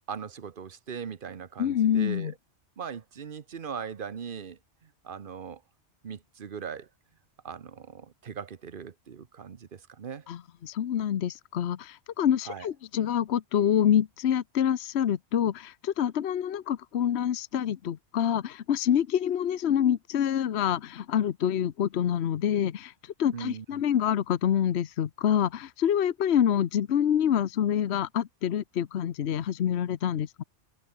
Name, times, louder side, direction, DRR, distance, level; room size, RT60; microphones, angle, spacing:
voice 1, 0.1-2.3 2.8-4.6 5.0-5.6 6.0-6.9 7.4-10.3 12.4-12.7 23.3-23.8, right 7 dB, 50° right, 1.1 m, -39 dB
voice 2, 1.6-2.3 10.3-22.9 23.2-30.4, left 9 dB, 70° left, 1.0 m, -26 dB
omnidirectional pair, 1.2 m